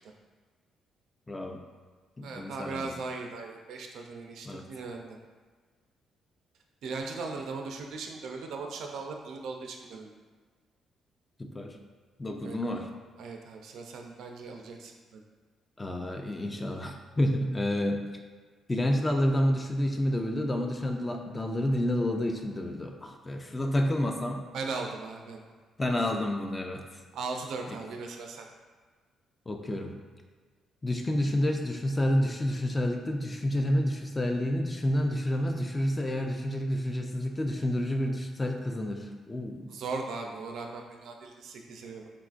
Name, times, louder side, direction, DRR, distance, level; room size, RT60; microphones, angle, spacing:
voice 1, 1.3-1.6 2.2-2.9 4.5-4.6 11.4-11.8 12.2-12.9 15.8-18.1 18.7-24.4 25.8-26.8 29.5-29.9 30.8-39.7, left 1 dB, 20° left, 3 dB, 0.3 m, -29 dB
voice 2, 2.2-5.2 6.8-10.1 12.4-12.8 13.2-15.2 24.5-25.4 27.1-28.5 39.7-42.1, right 4 dB, 75° right, 3 dB, 0.3 m, -38 dB
3.6 x 2.4 x 2.4 m, 1.5 s
cardioid pair, 90°, 0 cm